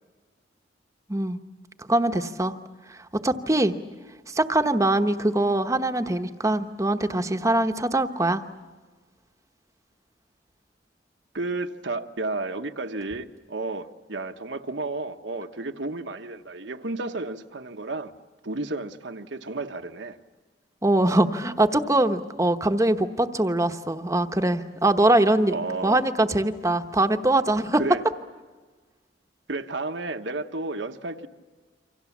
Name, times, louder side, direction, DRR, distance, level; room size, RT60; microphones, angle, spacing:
voice 1, 1.8-2.5 3.2-3.7 4.3-8.4 20.8-25.6 25.8-27.8, right 1 dB, 15° right, 1.0 m, -22 dB
voice 2, 11.3-18.1 18.4-20.2 25.5-26.0 27.8-28.0 29.5-31.3, right 3 dB, 75° right, 1.2 m, -32 dB
28.0 x 25.0 x 7.3 m
head